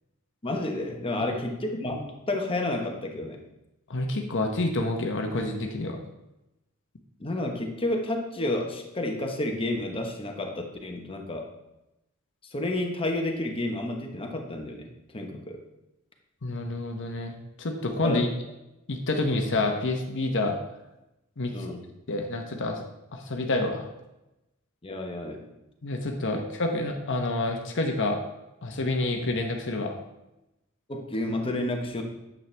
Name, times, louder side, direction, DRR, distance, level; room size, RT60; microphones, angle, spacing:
voice 1, 0.4-3.4 7.2-11.5 12.5-15.6 18.0-18.2 21.5-21.9 24.8-25.5 26.3-26.4 30.9-32.0, left 1 dB, 25° left, 2 dB, 1.1 m, -30 dB
voice 2, 3.9-6.0 16.4-18.3 18.9-20.5 21.4-21.5 22.1-22.8 23.1-23.9 25.8-28.2 28.6-30.0, left 2 dB, 60° left, 3 dB, 1.0 m, -28 dB
9.4 x 7.4 x 3.4 m, 0.93 s
head